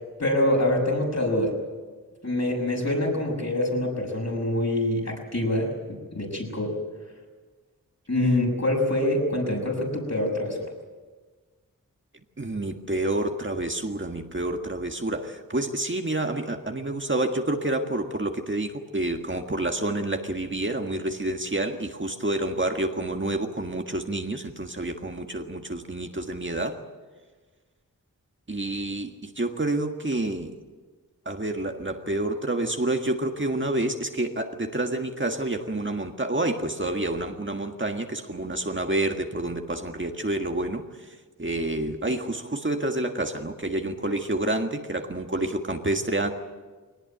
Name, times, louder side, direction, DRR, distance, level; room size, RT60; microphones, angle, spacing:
voice 1, 0.2-1.6 2.2-6.7 8.1-10.7, left 1 dB, 50° left, 0 dB, 6.6 m, -25 dB
voice 2, 12.4-26.8 28.5-30.5 31.3-46.3, right 2 dB, 35° right, 4 dB, 1.7 m, -28 dB
21.5 x 19.0 x 9.3 m, 1.4 s
wide cardioid pair, 55°, 34 cm